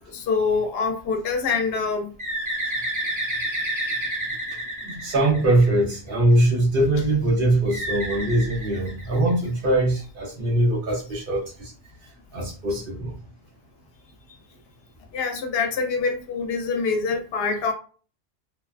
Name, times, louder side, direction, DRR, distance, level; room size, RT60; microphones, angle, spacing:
voice 1, 0.1-2.1 15.1-17.7, left 4 dB, 75° left, 5 dB, 0.8 m, -25 dB
Bird, 2.2-5.9 7.7-9.5, right 1 dB, 25° right, 0.5 m, -30 dB
voice 2, 4.8-11.7 12.3-13.1, right 1 dB, 60° right, -1 dB, 0.9 m, -22 dB
2.6 x 2.1 x 2.3 m, 0.38 s
omnidirectional pair, 1.1 m